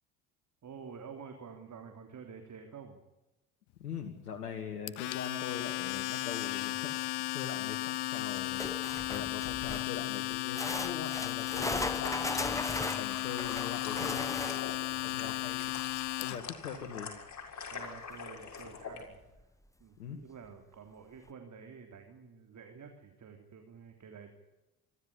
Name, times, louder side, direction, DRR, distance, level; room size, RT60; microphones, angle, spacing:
voice 1, 0.6-3.0 14.9-15.4 17.7-19.2 19.8-24.3, right 6 dB, 40° right, 4 dB, 3.4 m, -49 dB
voice 2, 3.8-6.9 7.3-12.3 12.8-14.3 15.0-15.7 16.2-17.1 20.0-20.2, left 7 dB, 85° left, 4 dB, 2.1 m, -42 dB
Domestic sounds home sounds, 4.9-16.5, left 17 dB, 60° left, 1.3 m, -35 dB
sound 1, 8.6-10.0 10.5-14.9 18.1-18.2 18.6-18.7 19.4-19.5, left 2 dB, 5° left, 1.1 m, -37 dB
sound 2, 11.6-19.0, left 6 dB, 35° left, 6.7 m, -45 dB
25.5 x 13.5 x 9.8 m, 1.0 s
hypercardioid pair, 65°, 46 cm